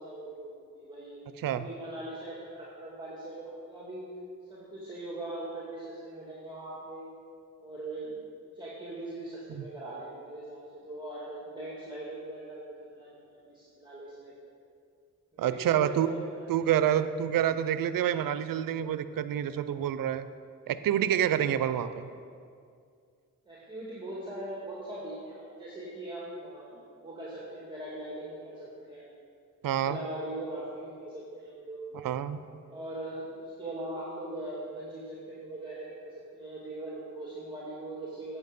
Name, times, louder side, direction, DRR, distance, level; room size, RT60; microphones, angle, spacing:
voice 1, 0.0-1.2 1.5-4.0 4.5-7.1 7.6-8.2 8.5-14.4 15.4-17.1 21.6-21.9 23.4-29.1 29.7-31.9 32.7-38.4, right 1 dB, 15° right, -7 dB, 2.7 m, -41 dB
voice 2, 15.4-16.1 16.5-20.3 20.7-22.1 29.6-30.0 32.0-32.4, right 10 dB, 90° right, 13 dB, 0.5 m, -27 dB
9.7 x 8.1 x 5.4 m, 2.3 s
cardioid pair, 55°, 33 cm